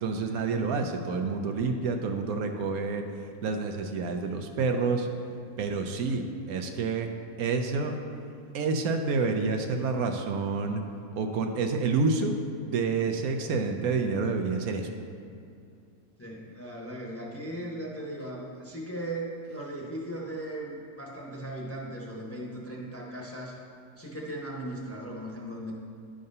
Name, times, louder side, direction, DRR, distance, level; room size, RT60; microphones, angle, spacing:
voice 1, 0.0-3.0 3.4-5.1 5.6-6.2 6.5-7.1 7.4-7.9 8.5-10.8 11.2-12.3 12.6-14.9, right 4 dB, 75° right, 5 dB, 1.0 m, -28 dB
voice 2, 16.2-23.6 24.0-25.7, right 1 dB, 10° left, -4 dB, 0.8 m, -38 dB
10.5 x 3.8 x 5.3 m, 2.5 s
omnidirectional pair, 1.6 m